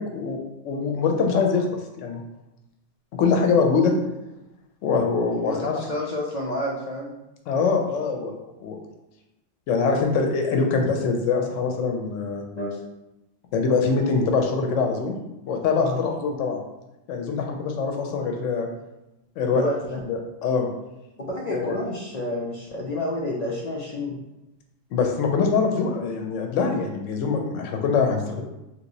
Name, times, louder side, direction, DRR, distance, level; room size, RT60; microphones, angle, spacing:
voice 1, 0.0-2.2 3.2-3.9 4.8-5.8 7.5-8.3 8.6-8.8 9.7-12.5 13.5-15.2 15.5-16.6 17.1-18.7 19.4-19.6 20.0-20.7 21.5-21.7 24.9-28.4, left 5 dB, 90° left, 3 dB, 0.9 m, -23 dB
voice 2, 5.3-7.1 12.6-12.8 15.7-16.0 19.5-20.0 21.2-24.2, left 1 dB, 60° left, -3 dB, 0.4 m, -29 dB
3.0 x 2.9 x 2.6 m, 0.95 s
omnidirectional pair, 1.3 m